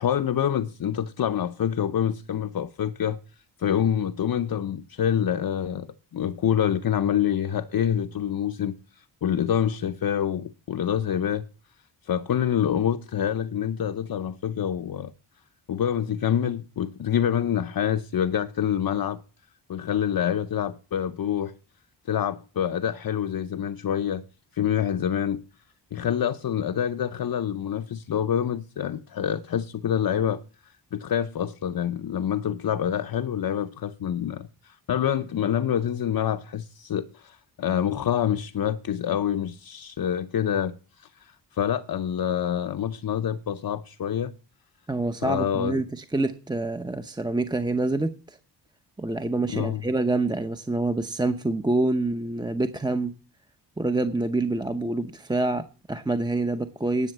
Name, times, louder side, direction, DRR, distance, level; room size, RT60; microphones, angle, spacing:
voice 1, 0.0-3.2 3.6-5.9 6.1-11.4 12.0-15.1 15.7-19.2 19.7-21.5 22.1-24.2 24.5-25.4 25.9-44.3 45.2-45.8 49.5-49.8, left 9 dB, 55° left, 0.7 m, -26 dB
voice 2, 44.9-48.4 49.0-53.1 53.8-57.1, right 2 dB, 10° right, 0.7 m, -26 dB
11.0 x 6.9 x 7.9 m
cardioid pair, 75°, 44 cm